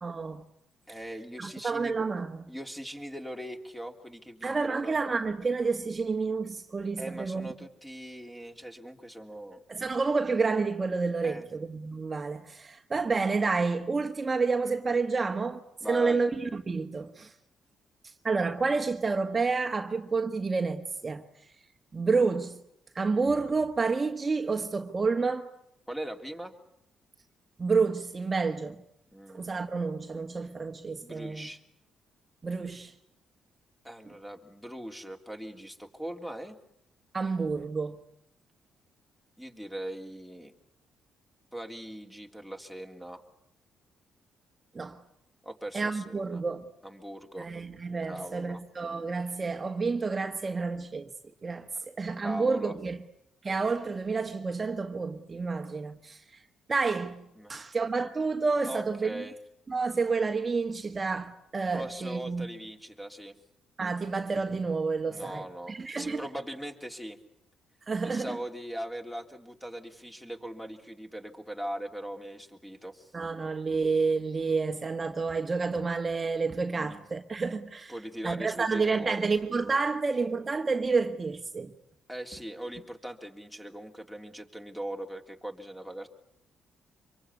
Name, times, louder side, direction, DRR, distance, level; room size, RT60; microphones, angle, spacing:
voice 1, 0.0-0.4 1.4-2.4 4.4-7.5 9.7-15.6 15.9-17.3 18.2-21.2 21.9-22.6 22.9-25.5 27.6-28.8 29.3-31.5 32.4-32.9 37.1-38.0 44.7-45.0 45.7-46.6 47.4-51.1 51.4-51.7 52.0-53.0 53.4-56.2 56.7-57.2 57.5-59.2 59.7-62.5 63.8-66.2 67.9-68.4 73.1-77.9 78.2-81.7, right 4 dB, 30° right, 1.5 m, -29 dB
voice 2, 0.9-1.9 2.5-4.9 7.0-9.6 11.2-11.5 15.8-16.2 25.9-26.5 29.1-29.4 31.0-31.6 33.8-36.6 39.4-40.5 41.5-43.2 45.4-46.4 46.8-47.5 48.0-48.6 52.2-52.7 57.4-57.5 58.7-59.4 61.7-63.3 65.1-67.2 68.0-73.1 76.7-77.0 77.9-79.3 82.1-86.1, right 1 dB, 5° left, 3.3 m, -40 dB
25.5 x 23.5 x 9.7 m
cardioid pair, 90°, 0 cm